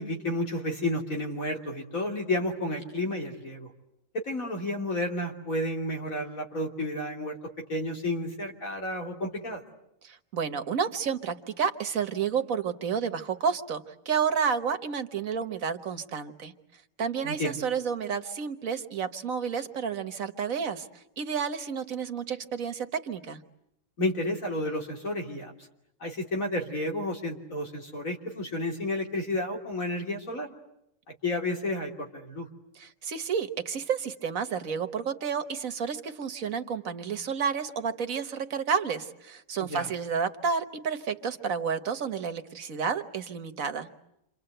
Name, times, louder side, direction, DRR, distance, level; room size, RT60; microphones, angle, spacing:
voice 1, 0.0-3.7 4.1-7.4 7.7-9.6 17.2-17.6 24.0-25.5 26.0-30.5 31.2-32.5 39.7-39.9, left 1 dB, 90° left, 1 dB, 3.4 m, -31 dB
voice 2, 10.0-16.5 17.0-23.4 32.7-43.9, right 6 dB, 85° right, 9 dB, 1.7 m, -30 dB
28.5 x 26.0 x 7.9 m, 0.82 s
omnidirectional pair, 1.4 m